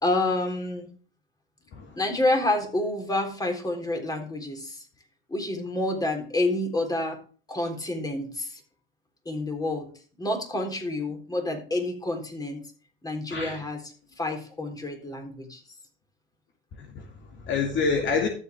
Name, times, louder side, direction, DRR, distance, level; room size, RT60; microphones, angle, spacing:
voice 1, 0.0-0.9 2.0-4.8 5.3-7.2 7.5-8.6 9.3-9.9 10.2-12.6 13.0-13.8 14.2-15.6, left 2 dB, 10° left, 3.7 m, -28 dB
voice 2, 13.3-13.6 16.8-18.3, left 5 dB, 40° left, 2.3 m, -28 dB
13.5 x 7.8 x 3.5 m
hypercardioid pair, 100°, 29 cm